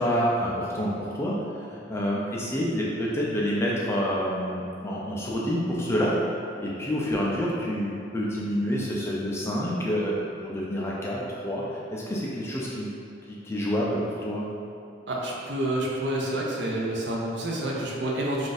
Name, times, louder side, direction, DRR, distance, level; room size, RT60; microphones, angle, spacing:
voice 1, 0.0-1.4 1.7-6.1 6.6-12.9 13.3-14.5, equal, 15° left, -5 dB, 0.3 m, -28 dB
voice 2, 15.1-18.5, right 1 dB, 60° right, -3 dB, 0.5 m, -28 dB
2.5 x 2.5 x 3.9 m, 2.6 s
head